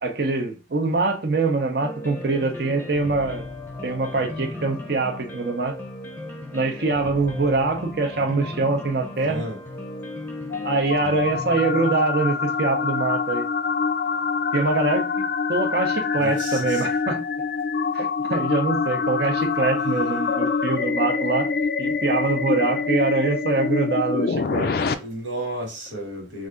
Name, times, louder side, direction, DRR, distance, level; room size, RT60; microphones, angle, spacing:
voice 1, 0.0-3.4 3.8-5.7 6.5-9.4 10.6-13.5 14.5-17.2 17.9-21.5 21.8-24.7, right 3 dB, 55° right, 0.7 m, -24 dB
sound 1, 1.8-14.7, left 1 dB, 10° left, 0.6 m, -37 dB
voice 2, 9.2-9.6 16.2-16.9 19.8-20.4 25.0-26.5, right 1 dB, 85° right, 1.6 m, -33 dB
sound 2, 9.9-24.9, left 5 dB, 50° left, 0.3 m, -25 dB
3.3 x 2.5 x 3.7 m
head